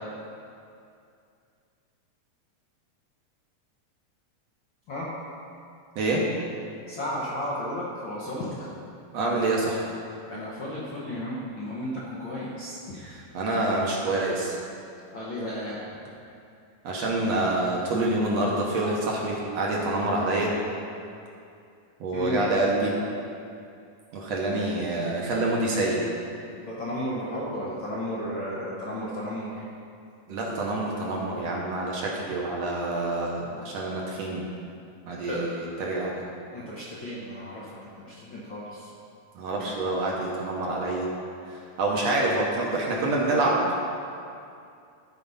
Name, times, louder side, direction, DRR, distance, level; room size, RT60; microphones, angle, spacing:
voice 1, 6.9-8.7 10.3-13.0 15.1-15.8 22.1-22.4 26.6-29.6 35.3-35.5 35.8-35.9 36.5-38.9, left 1 dB, 55° left, -7 dB, 1.4 m, -34 dB
voice 2, 9.1-9.8 13.0-14.5 16.8-20.5 22.0-22.9 24.1-26.0 30.3-34.4 35.1-36.2 39.4-41.1 41.5-43.6, right 2 dB, 65° right, -3 dB, 1.9 m, -27 dB
13.0 x 4.6 x 5.4 m, 2.5 s
omnidirectional pair, 3.7 m